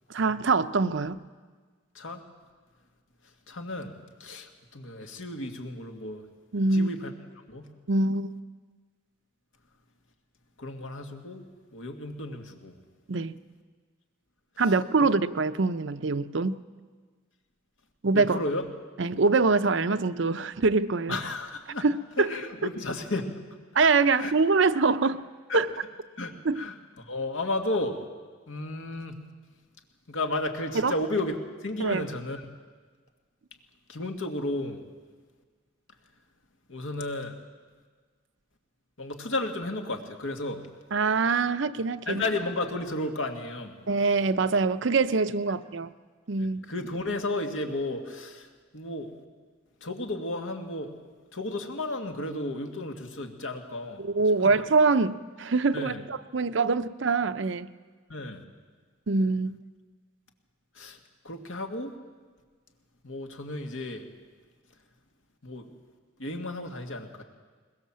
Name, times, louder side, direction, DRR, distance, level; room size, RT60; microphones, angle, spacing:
voice 1, 0.1-1.2 6.5-6.9 7.9-8.3 13.1-13.4 14.6-16.6 18.0-18.4 19.0-21.2 21.8-21.9 22.2-22.3 23.7-25.2 25.5-25.6 26.4-26.6 30.8-30.9 31.8-32.1 40.9-42.2 43.9-45.9 46.3-46.6 54.0-57.7 59.1-59.6, right 4 dB, 65° right, 12 dB, 0.6 m, -24 dB
voice 2, 3.5-6.3 6.7-7.1 7.5-7.7 10.6-11.5 11.7-12.8 14.6-14.7 15.0-15.1 18.1-18.7 21.1-21.9 22.2-23.4 24.2-24.3 25.5-25.6 26.2-28.0 28.5-29.2 30.1-31.4 31.6-32.5 33.9-34.8 36.7-37.4 39.0-40.6 42.1-43.8 46.4-49.1 49.8-51.0 51.3-54.0 54.4-54.6 55.7-56.1 58.1-58.4 60.8-61.0 61.2-61.9 63.0-64.1 65.4-65.7 66.2-67.2, left 2 dB, 85° left, 4 dB, 2.1 m, -33 dB
21.5 x 21.0 x 7.5 m, 1.5 s
head